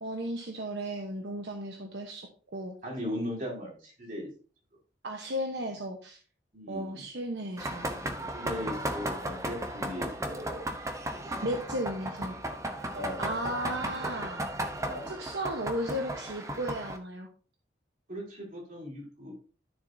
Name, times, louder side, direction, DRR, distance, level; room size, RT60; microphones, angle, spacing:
voice 1, 0.0-2.8 5.0-6.2 6.7-7.9 11.4-12.3 13.2-14.4 15.1-17.3, right 1 dB, 70° right, 3 dB, 1.1 m, -35 dB
voice 2, 2.8-4.3 6.5-7.0 8.3-10.7 11.1-11.6 12.9-13.4 14.7-15.1 18.1-19.3, equal, 45° right, -3 dB, 4.3 m, -38 dB
sound 1, 7.6-17.0, right 1 dB, 15° right, 0.9 m, -35 dB
12.5 x 6.9 x 2.7 m, 0.40 s
head